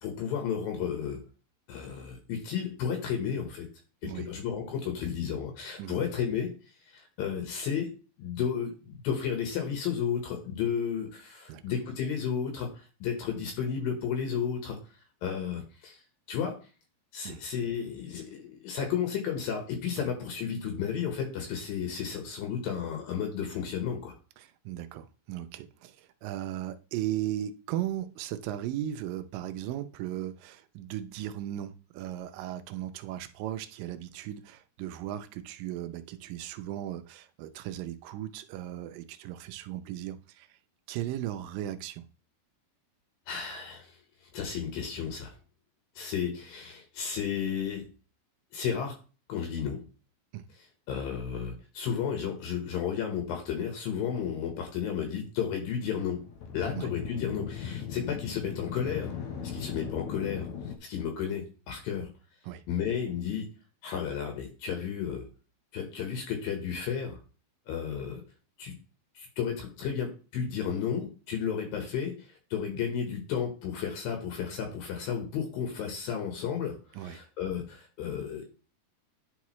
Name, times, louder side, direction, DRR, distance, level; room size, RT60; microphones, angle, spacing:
voice 1, 0.0-1.2 1.7-3.7 4.0-6.5 6.9-7.9 8.2-14.8 15.2-16.0 16.3-16.5 17.1-24.1 43.3-44.0 44.3-45.3 46.0-47.8 48.5-48.9 49.3-49.8 50.9-56.2 56.5-59.1 59.5-60.5 60.8-62.1 62.7-63.5 63.8-65.3 65.7-67.2 67.7-68.2 68.6-68.8 69.2-78.5, left 7 dB, 75° left, 2.8 m, -33 dB
voice 2, 24.4-40.5 40.9-42.0 50.3-50.4 56.8-56.9 62.5-62.6 77.0-77.2, right 12 dB, 80° right, 2.1 m, -37 dB
sound 1, 55.8-60.8, left 8 dB, 90° left, 1.5 m, -38 dB
10.0 x 4.8 x 3.1 m
omnidirectional pair, 4.4 m